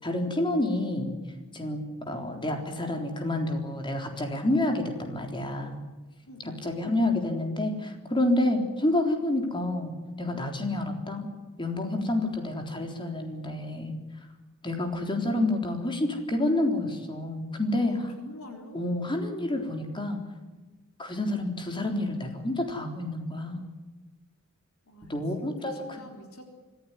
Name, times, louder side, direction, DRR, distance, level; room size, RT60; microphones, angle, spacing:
voice 1, 0.0-1.1 1.5-5.8 6.4-11.3 11.6-13.9 14.6-18.1 18.7-20.2 21.0-23.7 25.1-26.0, left 1 dB, 20° left, 4 dB, 3.8 m, -29 dB
voice 2, 6.3-6.6 17.7-18.9 24.9-26.6, left 1 dB, 70° left, 3 dB, 4.1 m, -46 dB
25.5 x 15.0 x 9.9 m, 1.2 s
head